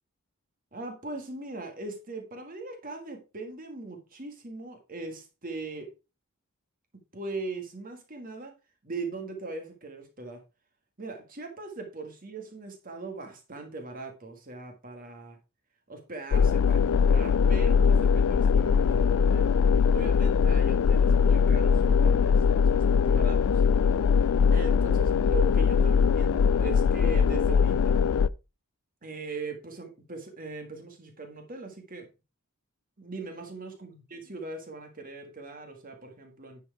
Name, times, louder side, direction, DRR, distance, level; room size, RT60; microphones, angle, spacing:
voice 1, 0.7-5.9 7.1-8.5 8.8-10.4 11.0-15.4 15.9-19.5 19.9-23.6 24.5-28.0 29.0-32.1 33.0-36.6, right 3 dB, 40° right, 4 dB, 1.7 m, -40 dB
sound 1, 16.3-28.3, left 6 dB, 75° left, 0.4 m, -22 dB
10.0 x 4.6 x 4.6 m, 0.29 s
head